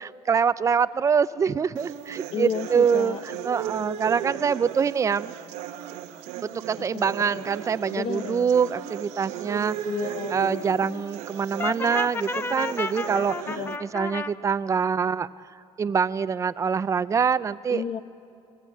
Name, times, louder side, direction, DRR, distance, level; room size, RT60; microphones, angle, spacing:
voice 1, 0.0-5.3 6.4-9.8 10.3-15.3 15.8-17.8, right 6 dB, 25° right, 16 dB, 0.5 m, -25 dB
sound 1, 1.8-13.8, right 11 dB, 90° right, 1.1 m, -36 dB
voice 2, 2.3-3.2 6.8-7.0 7.3-7.5 7.9-8.5 9.8-11.0 13.5-13.8 17.7-18.0, left 8 dB, 55° left, 11 dB, 1.1 m, -33 dB
Brass instrument, 11.6-14.3, left 4 dB, 20° left, 0.7 m, -31 dB
28.5 x 20.5 x 8.5 m, 2.5 s
cardioid pair, 120°, 11 cm